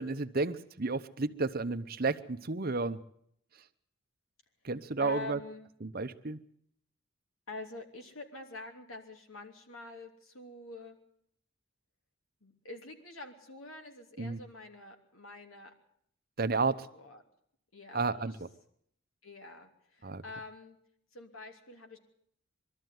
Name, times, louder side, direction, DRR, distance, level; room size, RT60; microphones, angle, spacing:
voice 1, 0.0-3.0 4.6-5.4 5.8-6.4 14.2-14.4 16.4-16.8 17.9-18.3 20.0-20.2, right 3 dB, 45° right, 11 dB, 0.9 m, -32 dB
voice 2, 5.0-5.7 7.5-11.0 12.4-15.7 16.5-17.2 17.7-18.3 19.2-20.8 21.1-22.0, left 2 dB, 85° left, 4 dB, 3.1 m, -46 dB
22.0 x 13.5 x 9.4 m, 0.67 s
head